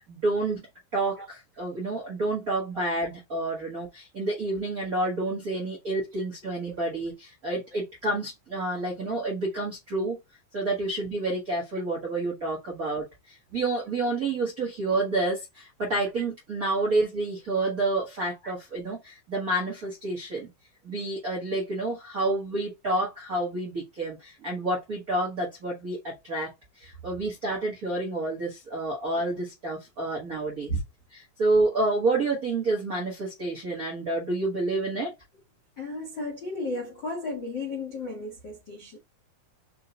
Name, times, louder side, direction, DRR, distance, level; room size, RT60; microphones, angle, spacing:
voice 1, 0.1-0.6 0.9-10.2 10.5-20.5 20.8-30.7 31.1-35.1, right 2 dB, 55° right, 0.9 m, -29 dB
voice 2, 35.8-39.0, left 2 dB, 65° left, 1.1 m, -34 dB
5.5 x 2.3 x 3.9 m
omnidirectional pair, 3.8 m